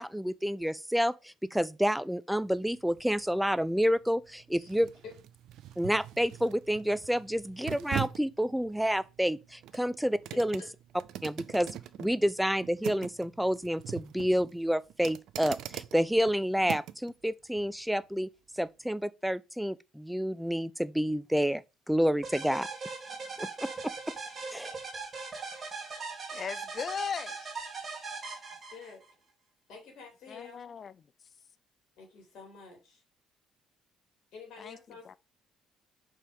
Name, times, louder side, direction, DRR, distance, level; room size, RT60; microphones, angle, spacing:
voice 1, 0.0-4.9 5.8-10.6 11.2-11.7 12.0-18.3 18.6-21.6 21.9-22.7 23.4-23.9 24.5-24.8, equal, 5° right, 0.5 m, -29 dB
sound 1, 2.4-17.1 17.6-17.7, right 12 dB, 60° right, 0.5 m, -43 dB
sound 2, 22.2-29.1, right 4 dB, 35° right, 2.5 m, -40 dB
voice 2, 26.3-27.4 30.3-30.9 34.6-34.8 35.0-35.2, left 6 dB, 45° left, 0.5 m, -37 dB
voice 3, 28.5-29.0 29.7-30.6 32.0-33.0 34.3-35.2, left 5 dB, 60° left, 3.0 m, -49 dB
5.5 x 5.0 x 5.4 m
figure-of-eight pair, 50°, 0 cm